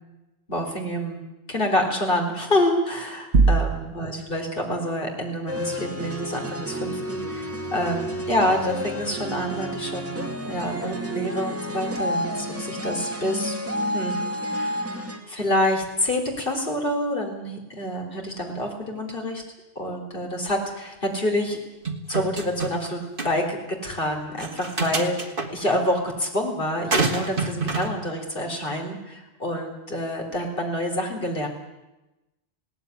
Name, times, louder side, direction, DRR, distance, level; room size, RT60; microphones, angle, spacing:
voice 1, 0.5-1.2 1.5-13.6 13.9-19.4 19.8-21.6 22.1-31.5, left 1 dB, 55° left, 2 dB, 4.2 m, -27 dB
sound 1, 3.3-4.3, right 4 dB, 75° right, 1.5 m, -20 dB
sound 2, 5.5-15.2, equal, 15° right, 2.2 m, -30 dB
sound 3, 21.9-22.9 23.2-23.3 24.4-25.5 26.9-27.9, right 3 dB, 55° right, 2.1 m, -27 dB
19.0 x 17.5 x 9.7 m, 1.0 s
omnidirectional pair, 1.1 m